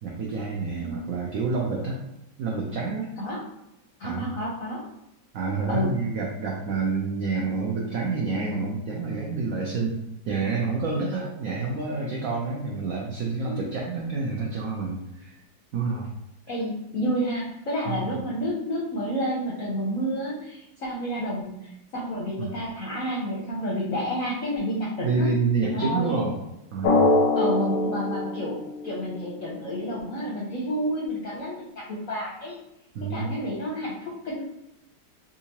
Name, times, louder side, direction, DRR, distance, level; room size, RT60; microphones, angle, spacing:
voice 1, 0.0-2.0 2.4-3.1 4.0-4.3 5.3-15.3 15.7-16.1 17.9-18.2 22.4-22.5 25.0-26.4 26.7-27.1 32.9-33.3, right 4 dB, 70° right, -2 dB, 0.8 m, -28 dB
voice 2, 4.0-4.8 5.7-6.0 13.4-13.6 16.5-25.3 25.7-26.3 27.4-32.6 33.0-34.5, equal, 60° left, -5 dB, 0.9 m, -30 dB
Drum, 26.8-29.4, left 2 dB, 90° left, 1.3 m, -23 dB
3.6 x 2.6 x 2.9 m, 0.87 s
omnidirectional pair, 2.0 m